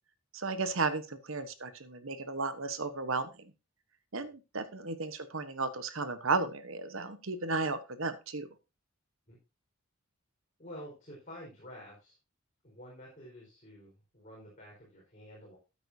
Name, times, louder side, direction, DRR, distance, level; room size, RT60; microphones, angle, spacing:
voice 1, 0.3-3.5 4.1-8.5, right 3 dB, 65° right, 11 dB, 1.2 m, -34 dB
voice 2, 10.6-12.1 12.6-15.6, equal, 35° left, -4 dB, 4.6 m, -49 dB
13.0 x 8.9 x 2.8 m, 0.28 s
head